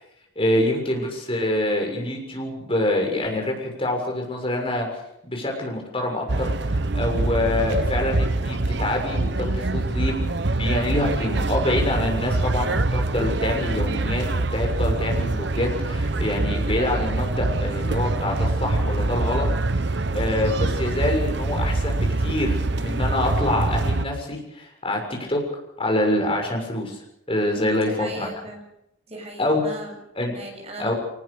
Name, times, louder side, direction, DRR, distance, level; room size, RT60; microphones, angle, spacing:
voice 1, 0.3-4.9 5.2-10.3 10.6-19.5 20.1-25.4 25.8-27.0 27.3-28.3 29.4-29.7 30.1-30.4 30.8-30.9, left 1 dB, 30° left, 1 dB, 6.7 m, -26 dB
sound 1, 6.3-24.0, right 2 dB, 60° right, 1.0 m, -24 dB
voice 2, 27.6-28.6 29.1-30.0 30.3-30.9, right 2 dB, 35° right, 2 dB, 7.2 m, -37 dB
24.5 x 19.5 x 6.6 m, 0.82 s
head